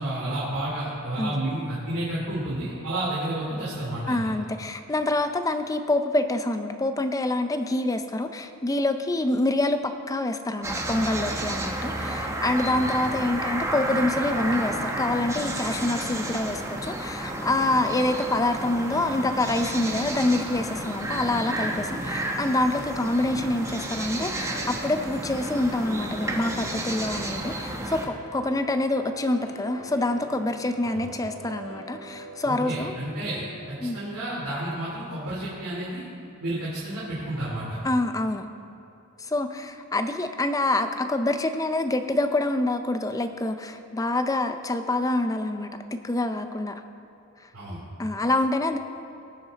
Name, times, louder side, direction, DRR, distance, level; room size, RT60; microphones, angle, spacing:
voice 1, 0.0-4.2 12.7-12.8 30.8-31.0 32.4-36.1 36.4-37.8 47.5-47.8, right 1 dB, 80° right, -8 dB, 2.7 m, -31 dB
voice 2, 4.1-32.9 33.8-34.0 37.8-38.5 39.2-46.8 48.0-48.8, left 2 dB, 15° left, 8 dB, 0.5 m, -26 dB
sound 1, 10.6-28.1, right 1 dB, 15° right, 1.0 m, -31 dB
sound 2, 24.4-34.3, right 1 dB, 85° left, 2.5 m, -44 dB
18.5 x 7.2 x 4.0 m, 2.9 s
head